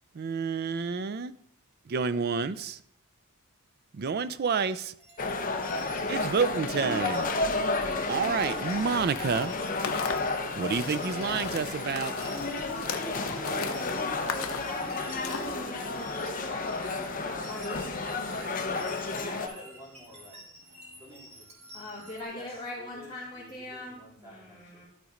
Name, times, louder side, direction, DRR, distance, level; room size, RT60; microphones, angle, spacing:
voice 1, 0.2-1.3 1.9-2.8 3.9-4.9 6.1-7.3 7.8-9.5 10.6-12.1, right 5 dB, 45° right, 15 dB, 0.4 m, -29 dB
sound 1, 5.0-22.2, right 1 dB, 30° right, 2.4 m, -49 dB
sound 2, 5.2-19.5, left 3 dB, 40° left, 0.8 m, -32 dB
sound 3, 8.2-15.7, left 6 dB, 70° left, 0.7 m, -40 dB
voice 2, 11.8-19.4 21.7-24.8, left 1 dB, 20° left, -9 dB, 2.3 m, -42 dB
voice 3, 18.6-20.4 20.9-22.0 22.3-24.8, left 2 dB, 15° right, -3 dB, 2.7 m, -50 dB
12.0 x 4.1 x 5.0 m, 0.69 s
head